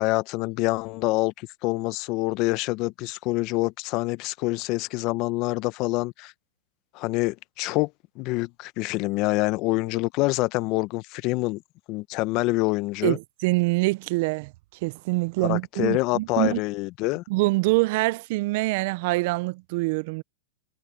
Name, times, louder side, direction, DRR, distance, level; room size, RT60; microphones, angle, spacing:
voice 1, 0.0-6.3 6.9-7.9 8.2-11.6 11.9-13.2 15.4-17.2, left 22 dB, 40° left, 0.7 m, -26 dB
voice 2, 13.0-14.5 14.8-16.6 17.3-20.2, right 22 dB, 50° right, 0.5 m, -25 dB
hypercardioid pair, 135°, 0 cm